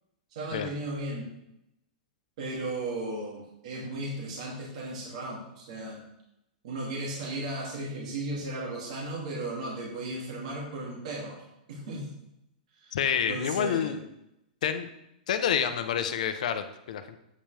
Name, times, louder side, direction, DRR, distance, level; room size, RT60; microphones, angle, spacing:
voice 1, 0.3-1.3 2.4-6.0 6.6-11.4 11.7-12.1 12.8-13.0 13.3-13.9, right 2 dB, 50° right, -3 dB, 2.5 m, -35 dB
voice 2, 12.9-14.0 14.6-14.9 15.3-17.2, left 8 dB, 55° left, 9 dB, 0.9 m, -28 dB
9.0 x 8.8 x 3.4 m, 0.85 s
supercardioid pair, 180°, 5 cm